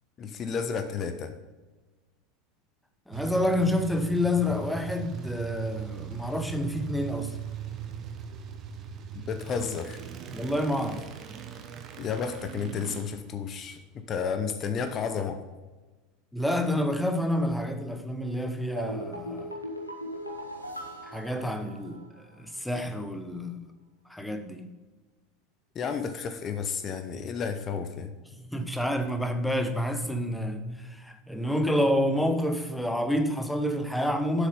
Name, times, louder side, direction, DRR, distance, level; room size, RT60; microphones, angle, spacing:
voice 1, 0.2-1.4 9.3-10.0 12.0-15.4 25.7-28.1, left 6 dB, 35° left, 0.7 m, -32 dB
voice 2, 3.1-7.4 10.3-11.1 16.3-19.5 21.0-23.7 24.1-24.7 28.4-34.5, left 1 dB, 5° left, 0.9 m, -28 dB
sound 1, 3.1-14.3, right 7 dB, 35° right, 0.9 m, -39 dB
sound 2, 18.8-22.2 22.5-22.6, equal, 90° left, 1.0 m, -39 dB
7.6 x 6.5 x 5.3 m
figure-of-eight pair, 75°, 0 cm